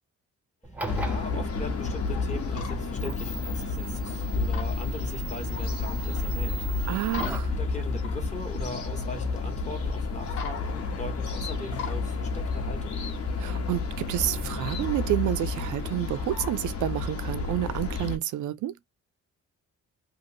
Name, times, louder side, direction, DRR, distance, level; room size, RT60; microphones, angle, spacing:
sound 1, 0.6-7.6, right 2 dB, 5° right, 0.5 m, -39 dB
voice 1, 0.7-6.7 7.6-13.2, left 2 dB, 25° left, 0.8 m, -40 dB
sound 2, 0.9-18.2, left 3 dB, 55° left, 0.8 m, -31 dB
sound 3, 2.2-4.7 5.0-6.3 7.0-8.9 9.2-9.3 9.6-9.7 9.9-10.0 10.3-10.9 11.3-12.1 12.8-13.2 13.7-13.9 14.3-14.9 15.5-15.7 16.2-16.5, left 7 dB, 80° left, 0.9 m, -40 dB
voice 2, 6.9-7.5 13.4-18.8, right 14 dB, 90° right, 0.5 m, -29 dB
2.8 x 2.5 x 2.8 m
cardioid pair, 140°, 29 cm